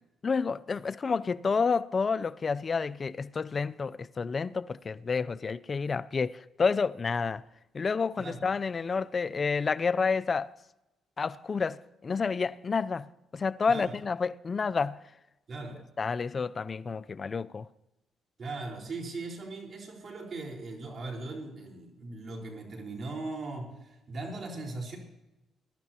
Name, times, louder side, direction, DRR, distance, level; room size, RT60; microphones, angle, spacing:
voice 1, 0.2-7.4 7.7-10.5 11.2-13.1 13.3-15.0 16.0-17.7, left 5 dB, 35° left, 0.5 m, -29 dB
voice 2, 15.5-15.8 18.4-25.0, right 3 dB, 45° right, 4.4 m, -39 dB
22.0 x 12.0 x 2.9 m
cardioid pair, 90°, 0 cm